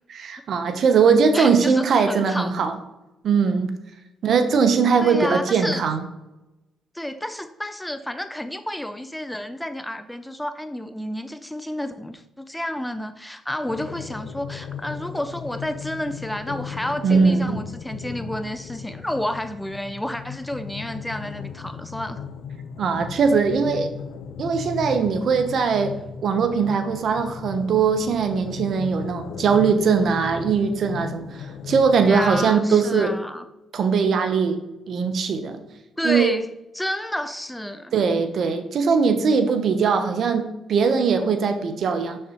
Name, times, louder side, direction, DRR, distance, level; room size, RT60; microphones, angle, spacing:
voice 1, 0.1-2.7 3.2-3.7 4.2-6.0 17.0-17.6 22.8-23.9 24.4-26.0 26.2-33.1 33.7-34.6 34.9-35.6 36.0-36.3 37.9-42.2, right 5 dB, 60° right, 8 dB, 0.8 m, -20 dB
voice 2, 1.3-2.5 5.0-5.8 6.9-22.2 32.0-33.4 36.0-37.9, left 1 dB, 5° left, 10 dB, 0.5 m, -30 dB
sound 1, 13.7-32.5, left 7 dB, 75° left, 0.5 m, -36 dB
6.8 x 6.6 x 3.0 m, 0.97 s
cardioid pair, 90°, 0 cm